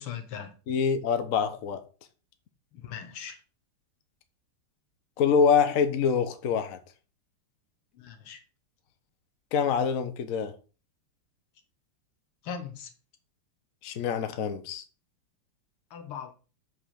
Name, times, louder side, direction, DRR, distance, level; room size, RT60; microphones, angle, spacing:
voice 1, 0.0-0.6 2.7-3.4 7.9-8.4 12.4-12.9 15.9-16.3, left 7 dB, 85° left, 2.1 m, -39 dB
voice 2, 0.7-1.8 5.2-6.8 9.5-10.5 13.8-14.8, left 6 dB, 50° left, 1.0 m, -25 dB
6.5 x 5.2 x 5.7 m
omnidirectional pair, 2.4 m